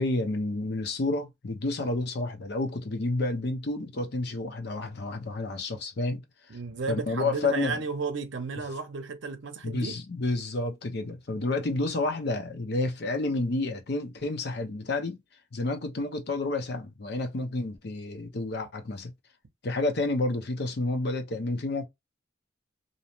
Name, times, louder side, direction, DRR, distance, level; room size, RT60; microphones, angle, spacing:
voice 1, 0.0-6.2 6.9-7.8 9.6-15.2 15.5-19.1 19.6-21.9, left 2 dB, 55° left, 0.6 m, -30 dB
voice 2, 6.5-9.9, right 4 dB, 70° right, 0.6 m, -33 dB
2.7 x 2.1 x 2.9 m
head